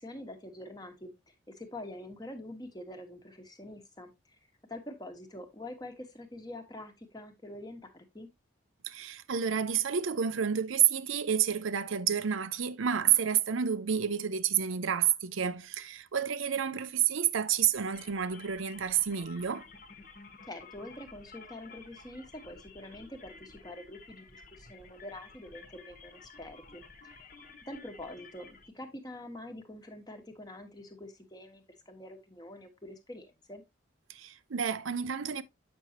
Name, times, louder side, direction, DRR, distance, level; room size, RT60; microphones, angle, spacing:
voice 1, 0.0-4.4 4.7-8.3 20.4-27.3 27.7-33.6, left 1 dB, 20° left, 1.1 m, -45 dB
voice 2, 8.8-19.7 34.1-35.4, right 8 dB, 90° right, 0.6 m, -29 dB
sound 1, 17.7-28.7, left 4 dB, 45° left, 1.2 m, -53 dB
8.2 x 6.1 x 2.8 m
head